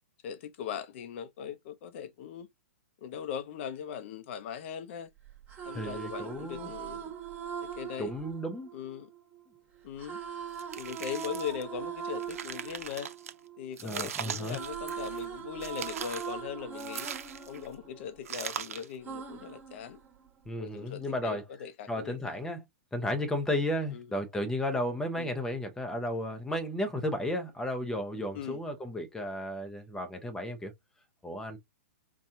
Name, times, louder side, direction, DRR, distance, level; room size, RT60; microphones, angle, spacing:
voice 1, 0.2-2.5 3.0-5.1 5.6-7.1 7.6-8.1 8.7-9.1 9.8-10.2 10.8-13.1 13.6-17.1 17.5-20.0 20.6-22.4 23.9-24.0 25.2-25.3 28.3-28.6, left 8 dB, 50° left, 0.7 m, -40 dB
sound 1, 5.3-9.4 10.0-14.0 14.3-18.5 19.0-20.5, right 8 dB, 20° right, 1.3 m, -41 dB
voice 2, 5.7-6.7 8.0-8.7 13.8-14.6 20.5-21.4 21.9-22.6 22.9-30.7 31.2-31.6, left 1 dB, 5° left, 0.7 m, -33 dB
sound 2, 10.6-11.6 12.1-13.3 13.8-15.3 15.6-16.4 16.8-17.7 18.3-18.9, right 8 dB, 70° right, 0.6 m, -40 dB
4.2 x 2.3 x 2.6 m
hypercardioid pair, 130°, 8 cm